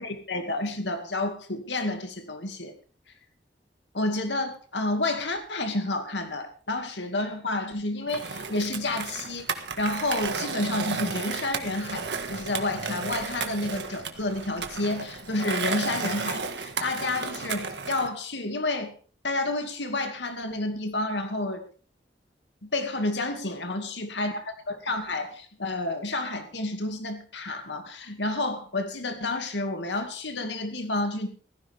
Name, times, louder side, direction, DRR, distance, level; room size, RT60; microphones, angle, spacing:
voice 1, 0.0-2.7 3.9-18.9 19.2-21.6 22.6-31.3, left 2 dB, 90° left, 6 dB, 2.4 m, -30 dB
Skateboard, 8.1-18.1, right 5 dB, 80° right, 1.7 m, -33 dB
16.5 x 15.0 x 3.6 m, 0.38 s
head